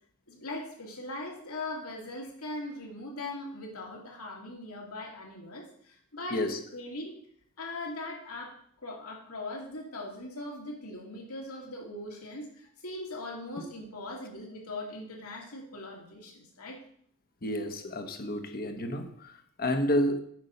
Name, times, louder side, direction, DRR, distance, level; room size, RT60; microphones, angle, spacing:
voice 1, 0.3-6.4 6.7-7.2 7.6-8.5 8.8-16.8, left 2 dB, 80° left, 2.7 m, -40 dB
voice 2, 17.4-20.2, equal, 45° left, 1.2 m, -30 dB
9.6 x 5.4 x 6.7 m
head